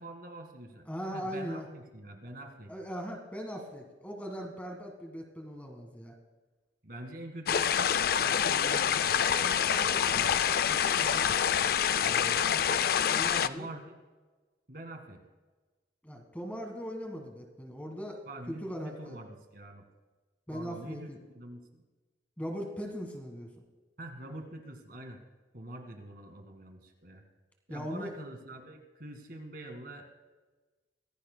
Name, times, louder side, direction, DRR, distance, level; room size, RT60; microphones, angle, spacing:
voice 1, 0.0-2.7 6.8-7.8 8.2-11.3 12.0-12.7 13.4-13.9 14.7-15.2 18.3-19.8 20.5-21.8 24.0-25.2 25.5-27.2 27.7-30.1, right 1 dB, 55° right, 4 dB, 1.8 m, -45 dB
voice 2, 0.9-1.6 2.7-6.1 13.1-13.7 16.0-18.2 18.5-19.2 20.5-21.2 22.4-23.5 27.7-28.1, equal, 10° left, 2 dB, 1.6 m, -39 dB
sound 1, 7.5-13.5, left 8 dB, 55° left, 0.4 m, -26 dB
24.0 x 16.0 x 2.2 m, 1.3 s
head